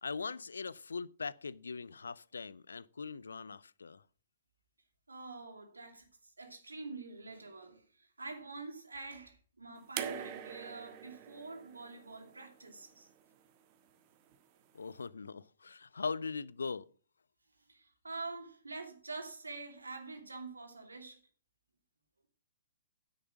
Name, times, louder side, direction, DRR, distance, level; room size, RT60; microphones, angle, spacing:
voice 1, 0.0-4.0 14.7-16.9, left 4 dB, 70° left, 0.5 m, -40 dB
voice 2, 5.1-13.1 17.7-21.2, right 3 dB, 75° right, 2.7 m, -46 dB
sound 1, 10.0-13.1 14.3-14.4, right 9 dB, 35° right, 1.4 m, -43 dB
10.0 x 8.1 x 6.2 m
figure-of-eight pair, 120°, 0 cm